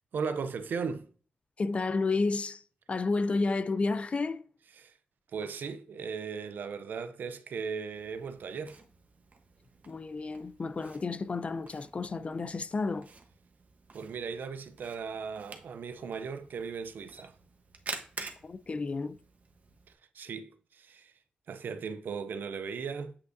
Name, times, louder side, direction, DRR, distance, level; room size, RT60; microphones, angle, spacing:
voice 1, 0.1-1.1 4.7-4.9 5.3-8.8 13.9-17.4 20.1-21.1 21.5-23.2, right 5 dB, 85° right, 0.5 m, -37 dB
voice 2, 1.6-2.6 2.9-4.4 9.9-13.1 18.4-19.2, left 3 dB, 40° left, 0.4 m, -31 dB
Camera, 7.9-19.9, right 4 dB, 50° right, 1.0 m, -49 dB
8.3 x 5.2 x 2.6 m
wide cardioid pair, 95°, 3 cm